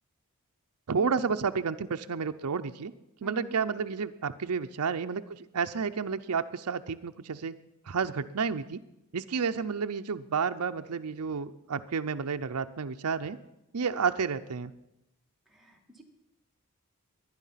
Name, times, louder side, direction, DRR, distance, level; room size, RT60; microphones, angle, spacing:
voice 1, 0.9-2.9 3.2-7.5 7.9-8.8 9.1-13.4 13.7-14.7, right 5 dB, 85° right, 8 dB, 0.6 m, -31 dB
voice 2, 3.2-3.6 15.5-16.0, equal, ahead, -1 dB, 2.1 m, -45 dB
21.0 x 10.5 x 5.7 m, 0.89 s
head